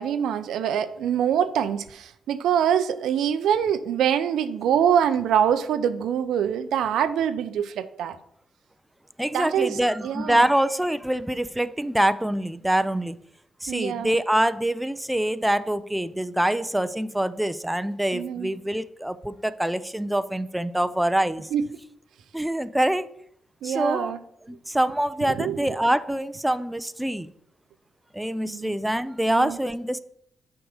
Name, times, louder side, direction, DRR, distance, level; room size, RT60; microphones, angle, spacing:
voice 1, 0.0-8.2 9.3-10.5 13.7-14.2 18.1-18.5 21.5-21.6 23.6-24.2 25.3-25.7 28.4-28.7 29.3-29.6, right 9 dB, 75° right, 11 dB, 0.5 m, -24 dB
voice 2, 9.2-13.2 13.6-21.5 22.3-23.1 23.6-24.1 24.5-27.3 28.1-30.0, right 1 dB, 10° right, 12 dB, 0.6 m, -25 dB
6.0 x 4.8 x 6.4 m, 0.70 s
hypercardioid pair, 45°, 0 cm